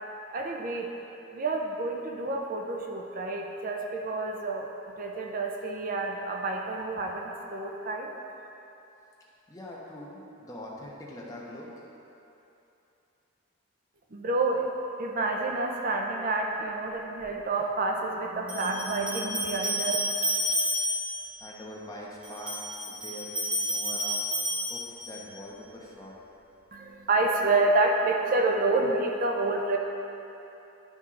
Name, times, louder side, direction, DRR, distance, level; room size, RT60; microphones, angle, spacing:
voice 1, 0.3-0.9 1.3-4.7 5.0-8.1 14.1-14.7 15.0-20.0 26.7-29.8, right 2 dB, 45° right, 1 dB, 0.5 m, -28 dB
voice 2, 9.5-11.8 21.4-22.6 22.9-24.2 24.7-26.1, equal, 20° left, -5 dB, 1.0 m, -43 dB
sound 1, 17.2-17.3 18.5-21.3 22.2-25.3, equal, 5° right, 1.5 m, -30 dB
11.5 x 4.4 x 3.7 m, 2.9 s
head